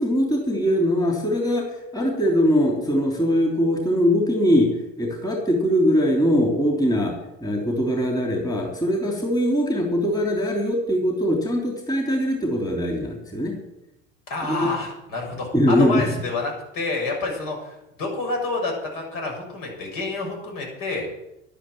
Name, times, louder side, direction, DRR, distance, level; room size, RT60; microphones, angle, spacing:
voice 1, 0.0-4.7 5.0-13.6 14.5-14.7 15.5-16.1, equal, 10° left, 0 dB, 3.3 m, -21 dB
voice 2, 14.3-21.1, left 3 dB, 55° left, 1 dB, 6.8 m, -28 dB
11.5 x 10.0 x 7.7 m, 0.89 s
hypercardioid pair, 75°, 40 cm